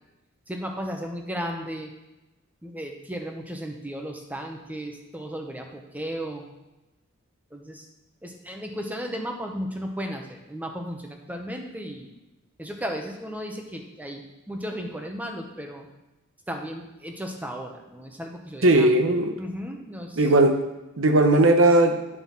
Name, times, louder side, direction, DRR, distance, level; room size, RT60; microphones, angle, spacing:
voice 1, 0.5-1.9 2.6-6.5 7.5-7.9 8.2-12.1 12.6-15.9 16.5-18.9 19.4-20.3, equal, 10° right, 2 dB, 1.1 m, -35 dB
voice 2, 18.6-19.3 20.2-20.6 21.0-22.0, right 2 dB, 70° right, 6 dB, 1.0 m, -18 dB
9.4 x 5.7 x 5.7 m, 1.0 s
head